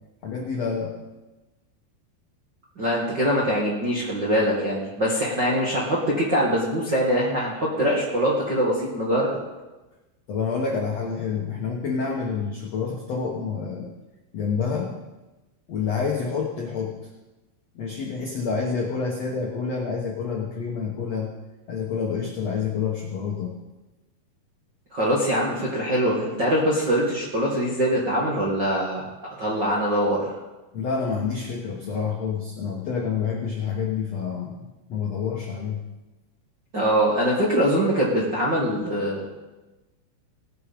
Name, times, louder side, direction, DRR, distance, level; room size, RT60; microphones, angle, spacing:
voice 1, 0.2-1.0 10.3-13.9 14.3-14.9 15.7-16.9 17.7-21.3 21.7-23.5 30.7-34.6 34.9-35.8, left 5 dB, 70° left, -1 dB, 1.5 m, -28 dB
voice 2, 2.8-9.4 24.9-29.1 29.4-30.3 36.7-39.2, equal, 45° right, -5 dB, 1.5 m, -23 dB
18.5 x 8.4 x 5.3 m, 1.1 s
omnidirectional pair, 5.1 m